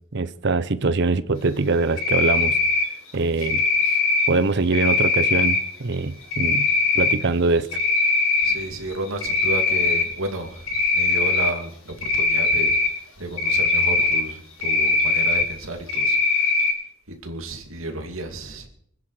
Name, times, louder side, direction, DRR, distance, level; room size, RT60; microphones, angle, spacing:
voice 1, 0.1-2.6 3.1-3.6 4.3-6.7 6.9-7.7, right 3 dB, 60° right, 0.8 m, -23 dB
Cricket, 2.0-2.9 3.4-4.3 4.7-5.6 6.3-7.1 7.6-8.5 8.9-10.1 10.7-11.5 12.0-12.9 13.4-14.2 14.6-15.4 15.9-16.7, left 4 dB, 85° left, 4.9 m, -20 dB
voice 2, 8.4-12.8 13.2-16.6 17.1-18.7, right 2 dB, 80° right, 2.6 m, -32 dB
25.5 x 9.8 x 5.0 m
head